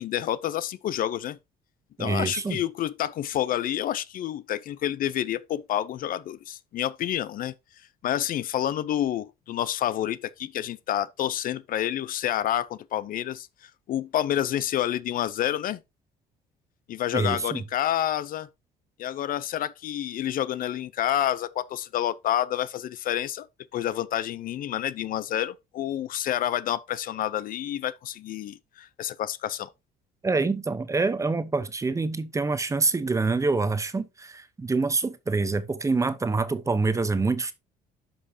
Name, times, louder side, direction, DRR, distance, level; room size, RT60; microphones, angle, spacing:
voice 1, 0.0-1.4 2.0-7.5 8.0-13.5 13.9-15.8 16.9-18.5 19.0-23.5 23.7-29.7, left 11 dB, 55° left, 0.5 m, -28 dB
voice 2, 2.0-2.6 17.1-17.6 30.2-37.5, right 3 dB, 20° right, 0.7 m, -26 dB
11.0 x 5.4 x 2.7 m
cardioid pair, 110°, 17 cm